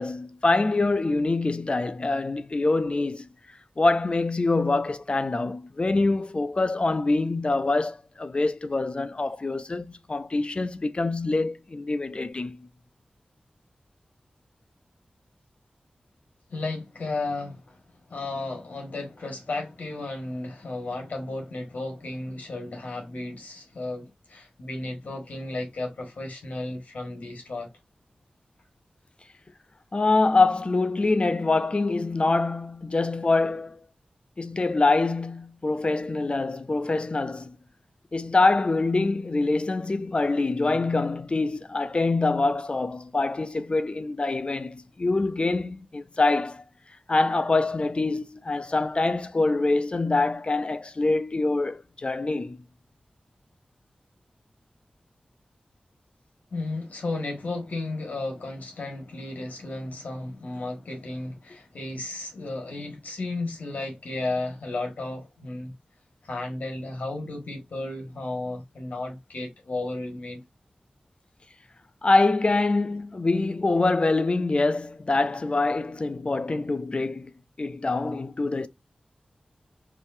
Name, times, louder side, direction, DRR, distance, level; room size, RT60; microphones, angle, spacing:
voice 1, 0.0-3.3 3.8-12.7 29.9-33.8 34.4-37.6 38.1-46.6 47.1-52.6 72.0-77.3 77.6-78.7, left 3 dB, 45° left, 0.5 m, -25 dB
voice 2, 16.5-27.7 56.5-65.7 66.2-70.4, left 2 dB, 80° left, 1.6 m, -34 dB
4.9 x 2.7 x 2.6 m
wide cardioid pair, 60°, 3 cm